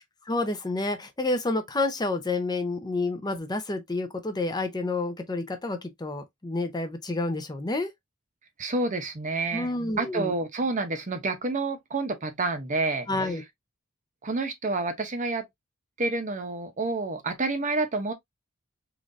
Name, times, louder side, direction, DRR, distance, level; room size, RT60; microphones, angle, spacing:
voice 1, 0.3-7.9 9.5-10.3 13.1-13.4, left 2 dB, 20° left, 0.6 m, -29 dB
voice 2, 8.6-9.7 10.0-13.3 14.2-15.5 16.0-18.1, right 3 dB, 35° right, 0.7 m, -29 dB
3.8 x 3.1 x 2.5 m
head